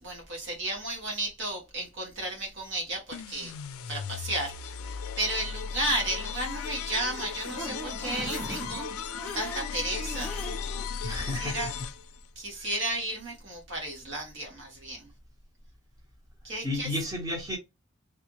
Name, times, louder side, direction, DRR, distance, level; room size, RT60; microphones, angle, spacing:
voice 1, 0.0-3.5 3.9-4.5 4.8-8.9 9.3-10.3 11.4-11.7 12.3-15.1 16.4-16.9, right 1 dB, 55° right, 1.4 m, -33 dB
sound 1, 3.1-12.3, left 6 dB, 75° left, 0.4 m, -36 dB
sound 2, 6.9-10.9 11.3-11.4 11.7-11.8, right 1 dB, 5° left, 0.8 m, -40 dB
voice 2, 11.0-11.7 12.5-12.7 16.6-17.6, left 1 dB, 15° right, 1.1 m, -32 dB
3.4 x 2.5 x 3.0 m
head